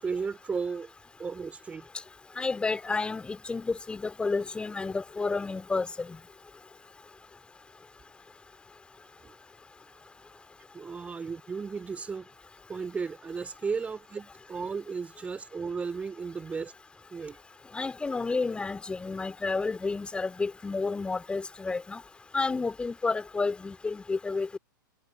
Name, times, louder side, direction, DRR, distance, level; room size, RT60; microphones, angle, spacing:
voice 1, 0.0-0.9 1.2-1.9 9.2-9.3 9.9-10.0 10.7-12.3 12.7-16.7 17.1-17.4, right 5 dB, 10° right, 3.0 m, -34 dB
voice 2, 2.4-6.2 17.7-22.0 22.3-24.6, left 4 dB, 10° left, 2.7 m, -31 dB
figure-of-eight pair, 105°, 11 cm